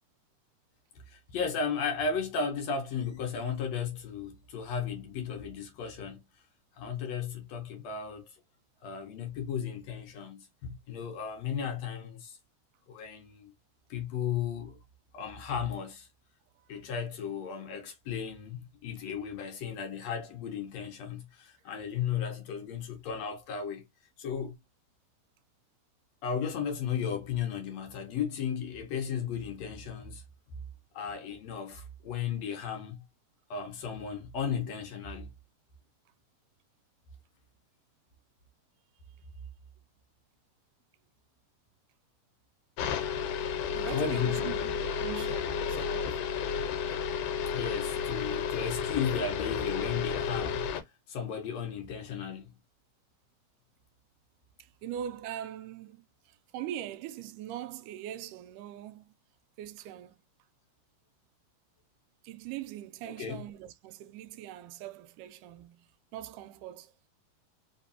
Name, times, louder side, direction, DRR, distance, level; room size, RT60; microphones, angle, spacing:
voice 1, 1.1-6.3 6.8-8.3 8.8-12.4 12.9-13.5 13.9-14.8 15.1-16.1 16.7-23.9 24.2-24.6 26.2-30.2 30.9-33.0 33.5-35.3 43.9-44.6 47.5-50.8 51.1-52.6 63.1-63.4, left 7 dB, 65° left, 1.9 m, -35 dB
sound 1, 42.8-50.8, left 7 dB, 85° left, 2.4 m, -32 dB
voice 2, 43.4-46.2 54.8-59.1 59.6-60.2 62.2-65.9 66.1-66.9, right 11 dB, 90° right, 2.1 m, -42 dB
4.7 x 3.2 x 2.7 m
omnidirectional pair, 3.7 m